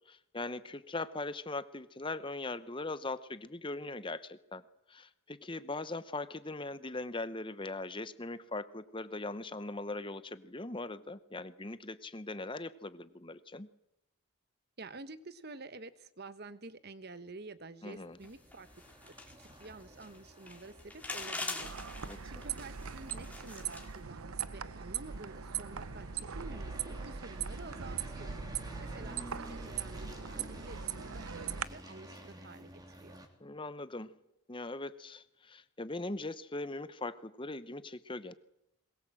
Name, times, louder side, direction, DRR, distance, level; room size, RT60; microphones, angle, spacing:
voice 1, 0.1-4.6 4.9-13.7 17.8-18.2 22.0-22.5 33.4-34.1 34.5-38.3, left 2 dB, 25° left, 13 dB, 0.8 m, -40 dB
voice 2, 14.8-18.7 19.0-21.7 22.2-28.3 28.8-32.7 33.0-33.2, right 3 dB, 45° right, 13 dB, 1.1 m, -50 dB
sound 1, 17.9-33.3, right 1 dB, 15° right, 2.9 m, -52 dB
sound 2, 18.2-24.0, left 2 dB, 5° left, 2.4 m, -44 dB
sound 3, 21.6-31.6, right 7 dB, 75° right, 0.8 m, -40 dB
21.5 x 21.0 x 7.7 m, 0.85 s
head